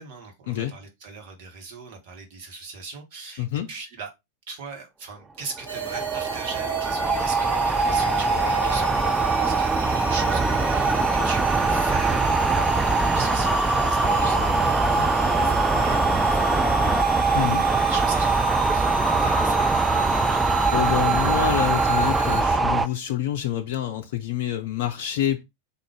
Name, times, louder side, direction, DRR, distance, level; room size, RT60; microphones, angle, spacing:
voice 1, 0.0-4.1 4.5-18.4 18.7-20.5, right 4 dB, 50° right, 1.2 m, -40 dB
voice 2, 3.4-3.7 15.0-15.1 17.3-17.7 20.7-25.5, left 11 dB, 50° left, 0.4 m, -27 dB
sound 1, 5.5-22.9, right 3 dB, 10° right, 0.3 m, -22 dB
sound 2, 5.7-22.4, right 3 dB, 75° right, 0.7 m, -32 dB
3.8 x 2.4 x 4.6 m
figure-of-eight pair, 90°, 0 cm